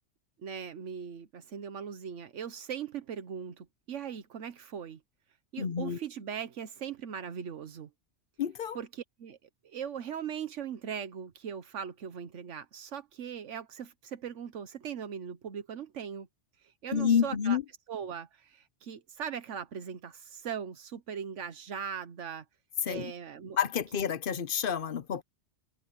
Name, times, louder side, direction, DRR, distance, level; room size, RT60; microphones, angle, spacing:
voice 1, 0.4-5.0 5.5-7.9 8.7-9.4 9.6-16.3 16.6-17.6 17.9-22.4 22.8-23.6, right 8 dB, 85° right, 1.3 m, -39 dB
voice 2, 5.6-6.0 8.4-8.8 16.9-17.6 22.9-23.1 23.5-25.2, left 7 dB, 55° left, 0.9 m, -29 dB
omnidirectional pair, 1.2 m